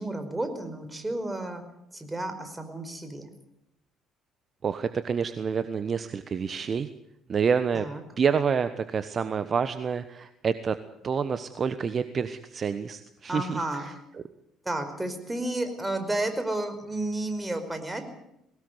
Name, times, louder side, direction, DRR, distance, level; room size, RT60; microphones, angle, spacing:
voice 1, 0.0-1.6 1.9-3.3 7.7-8.0 13.3-14.0 14.6-18.0, right 1 dB, 15° right, 8 dB, 4.9 m, -32 dB
voice 2, 4.6-6.9 7.3-7.9 8.2-10.8 11.0-13.9, right 6 dB, 40° right, 12 dB, 1.1 m, -28 dB
20.5 x 18.0 x 8.1 m, 0.82 s
hypercardioid pair, 50°, 0 cm